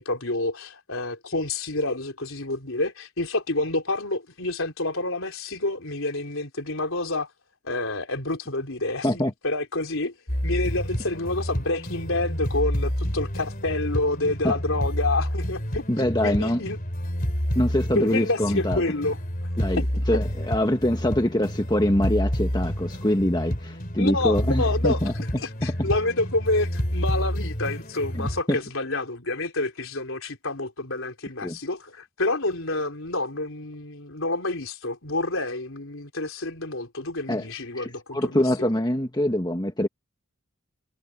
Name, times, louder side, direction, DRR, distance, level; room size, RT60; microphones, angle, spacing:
voice 1, 0.0-7.3 7.6-10.1 10.4-16.8 18.0-19.2 19.8-19.9 20.1-20.2 24.0-38.7, left 2 dB, 65° left, 3.7 m, -28 dB
sound 1, 10.3-28.4, equal, 40° left, 3.9 m, -29 dB
voice 2, 15.9-16.6 17.5-18.8 19.6-25.9 28.1-28.6 31.4-31.6 37.3-37.5 37.7-39.9, left 1 dB, 20° left, 1.5 m, -24 dB
head